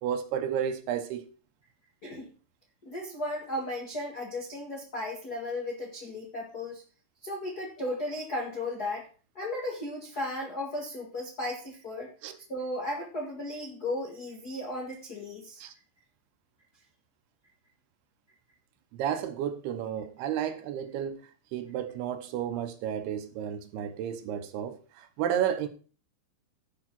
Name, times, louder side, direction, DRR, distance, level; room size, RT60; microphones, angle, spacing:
voice 1, 0.0-1.2 12.2-12.4 15.6-15.7 18.9-21.2 21.5-25.7, right 9 dB, 75° right, 2.7 m, -32 dB
voice 2, 2.8-6.8 7.2-9.1 9.3-12.1 12.5-15.6, left 1 dB, 75° left, 0.8 m, -35 dB
13.0 x 5.4 x 6.0 m
omnidirectional pair, 5.0 m